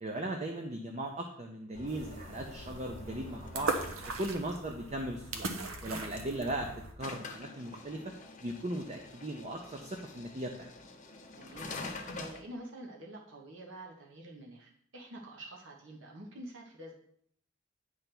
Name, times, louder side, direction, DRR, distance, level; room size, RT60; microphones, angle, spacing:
voice 1, 0.0-3.7 4.2-5.5 5.8-6.7 7.0-8.0 8.4-10.7, right 1 dB, 30° right, 3 dB, 0.6 m, -38 dB
sound 1, 1.7-4.5 7.0-12.4, left 3 dB, 35° left, 0.9 m, -46 dB
sound 2, 1.9-6.9, right 3 dB, 85° right, 1.0 m, -39 dB
voice 2, 11.3-11.8 12.0-17.0, right 1 dB, 60° right, -1 dB, 1.1 m, -47 dB
9.3 x 3.4 x 5.9 m, 0.67 s
head